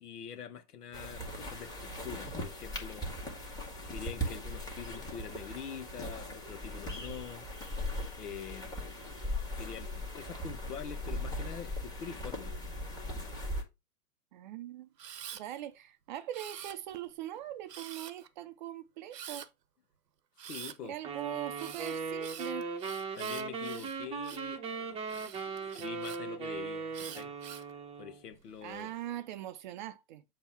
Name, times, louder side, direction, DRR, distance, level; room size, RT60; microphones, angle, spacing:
voice 1, 0.0-3.1 3.9-7.5 8.2-8.8 9.6-12.6 20.4-20.9 23.1-27.3 28.0-28.9, left 8 dB, 70° left, 1.4 m, -45 dB
sound 1, 0.9-13.6, left 1 dB, 10° left, 1.6 m, -39 dB
voice 2, 14.3-14.9 15.3-19.5 20.8-22.7 28.6-30.2, right 12 dB, 30° right, 0.5 m, -41 dB
Camera, 15.0-15.4 16.3-17.1 17.7-18.3 19.1-19.5 20.4-20.8 21.6-24.5 25.1-26.2 26.9-27.7 28.3-28.8, right 9 dB, 85° right, 0.8 m, -46 dB
sound 2, 21.0-28.2, right 5 dB, 10° right, 0.8 m, -38 dB
7.0 x 2.9 x 5.7 m
hypercardioid pair, 125°, 48 cm